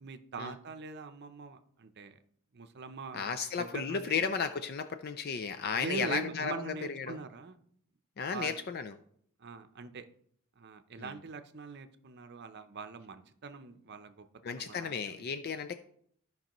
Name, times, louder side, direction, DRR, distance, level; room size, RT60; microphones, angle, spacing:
voice 1, 0.0-2.2 2.5-4.3 5.7-7.6 8.3-8.6 9.4-10.1 10.6-15.2, right 4 dB, 50° right, 9 dB, 0.6 m, -43 dB
voice 2, 3.1-7.2 8.2-8.9 11.0-11.2 14.4-15.8, left 6 dB, 45° left, 9 dB, 0.4 m, -34 dB
14.0 x 5.3 x 3.0 m, 0.65 s
head